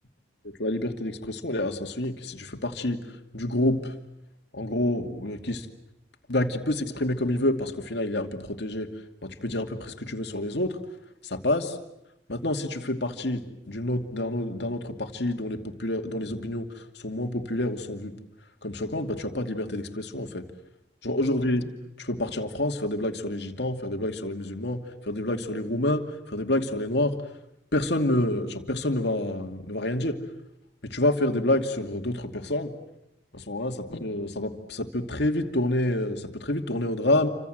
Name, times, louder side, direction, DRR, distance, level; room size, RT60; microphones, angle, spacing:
voice 1, 0.6-3.0 3.3-3.9 4.5-5.7 6.3-8.9 9.2-10.8 11.2-11.7 12.3-16.7 17.0-18.1 18.6-20.4 21.0-26.0 26.3-27.1 27.7-30.2 30.8-32.7 33.5-37.3, left 1 dB, 60° left, 5 dB, 2.6 m, -28 dB
29.0 x 25.5 x 8.0 m, 0.86 s
head